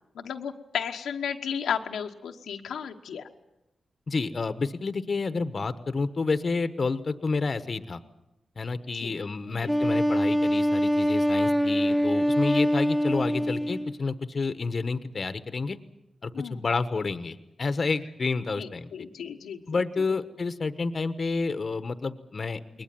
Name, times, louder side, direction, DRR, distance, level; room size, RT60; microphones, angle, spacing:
voice 1, 0.1-3.3 8.9-9.1 9.5-9.7 13.4-13.5 16.3-16.6 18.6-19.8 20.1-20.2, left 7 dB, 90° left, 3 dB, 1.2 m, -34 dB
voice 2, 4.1-8.0 8.6-15.8 16.2-18.9 19.7-22.8, left 4 dB, 50° left, 12 dB, 1.2 m, -29 dB
Wind instrument woodwind instrument, 9.7-14.0, equal, 5° right, 1.4 m, -24 dB
21.0 x 20.0 x 9.3 m, 0.91 s
cardioid pair, 55°, 0 cm